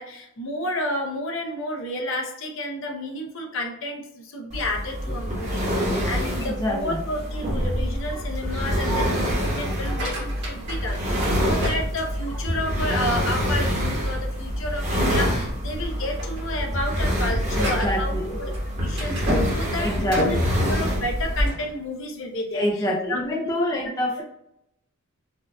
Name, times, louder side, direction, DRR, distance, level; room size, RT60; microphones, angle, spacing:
voice 1, 0.0-22.7 23.1-23.5 23.8-24.2, left 1 dB, 60° left, 2 dB, 0.6 m, -31 dB
sound 1, 4.5-21.5, equal, 30° right, 1.1 m, -26 dB
voice 2, 5.1-5.5 6.4-7.0 8.1-8.2 8.6-9.1 9.6-10.0 11.3-11.5 17.6-18.4 19.2-19.3 19.8-20.2 22.5-24.2, equal, 15° left, -2 dB, 0.4 m, -28 dB
sound 2, 9.8-12.5 13.0-13.4 13.9-14.0 14.4-14.6 15.2-15.5 15.9-21.7, equal, 50° right, 1.4 m, -32 dB
4.3 x 2.5 x 2.3 m, 0.79 s
head